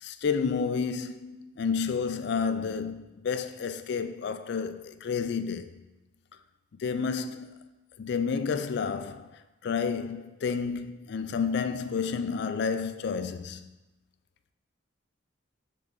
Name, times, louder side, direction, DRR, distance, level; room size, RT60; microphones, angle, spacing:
voice 1, 0.0-5.7 6.8-7.7 8.0-9.3 9.6-13.7, left 5 dB, 65° left, 0.4 m, -30 dB
7.1 x 3.8 x 3.9 m
head